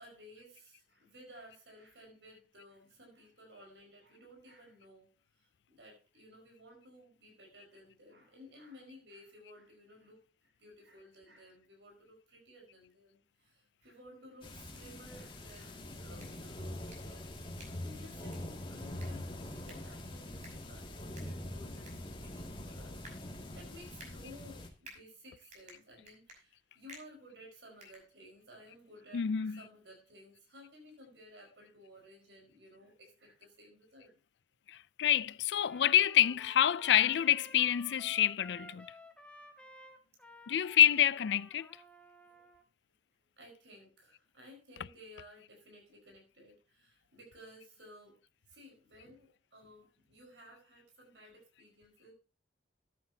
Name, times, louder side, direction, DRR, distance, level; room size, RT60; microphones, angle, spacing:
voice 1, 0.0-22.0 22.2-34.2 42.2-42.5 42.9-43.0 43.4-48.2 48.5-52.1, equal, 80° right, 5.0 m, -56 dB
sound 1, 14.4-24.7, left 1 dB, 30° left, 2.2 m, -44 dB
sound 2, 14.5-28.6, right 1 dB, 45° right, 5.6 m, -59 dB
voice 2, 29.1-29.7 34.7-38.9 40.5-41.7, left 10 dB, 75° left, 0.4 m, -27 dB
Trumpet, 35.5-42.6, left 1 dB, 5° left, 1.4 m, -54 dB
14.0 x 10.0 x 2.8 m
head